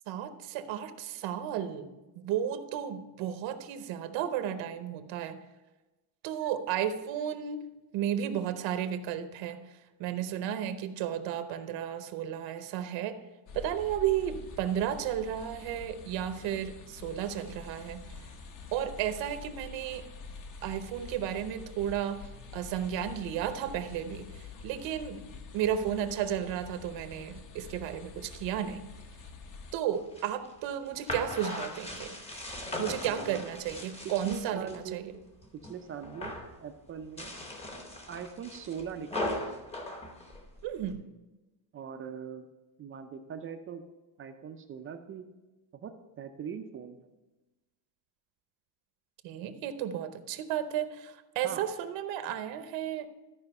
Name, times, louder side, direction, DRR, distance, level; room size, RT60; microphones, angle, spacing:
voice 1, 0.1-5.4 6.2-7.7 7.9-9.6 10.0-13.2 13.5-18.1 18.7-20.1 20.6-22.2 22.5-24.3 24.6-25.2 25.5-28.9 29.7-32.1 32.8-35.0 40.6-41.0 49.2-53.1, right 10 dB, 75° right, 9 dB, 0.9 m, -33 dB
sound 1, 13.5-29.8, left 4 dB, 45° left, 0.9 m, -47 dB
sound 2, 29.9-34.8 35.2-35.8 36.0-36.5 37.0-40.9, left 1 dB, 15° left, 0.8 m, -39 dB
voice 2, 33.1-33.4 34.2-35.1 35.7-36.3 36.6-37.4 38.1-39.7 41.7-42.5 42.8-43.8 44.2-45.3 45.7-47.1 51.4-51.7, right 7 dB, 30° right, 7 dB, 0.4 m, -41 dB
13.0 x 4.9 x 5.3 m, 1.1 s
cardioid pair, 180°, 45 cm